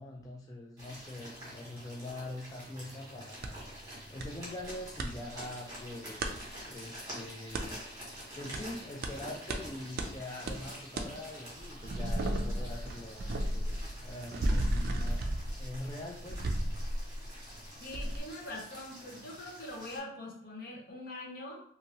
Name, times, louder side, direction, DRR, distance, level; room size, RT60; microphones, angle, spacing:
voice 1, 0.0-3.6 4.1-7.9 8.3-16.5, left 1 dB, 20° left, -2 dB, 0.3 m, -44 dB
sound 1, 0.8-20.0, equal, 20° right, 1.4 m, -48 dB
sound 2, 3.4-3.5 4.2-4.3 4.6-5.1 6.2-6.3 7.5-7.7 8.5-8.6 9.0-9.1 9.5-9.6 10.0-10.1 10.5-10.6 11.0-11.1 11.5-17.6 17.9-18.2, right 1 dB, 55° right, 0.4 m, -33 dB
voice 2, 17.8-21.6, left 1 dB, 55° left, -1 dB, 0.8 m, -43 dB
2.8 x 2.6 x 2.9 m, 0.64 s
head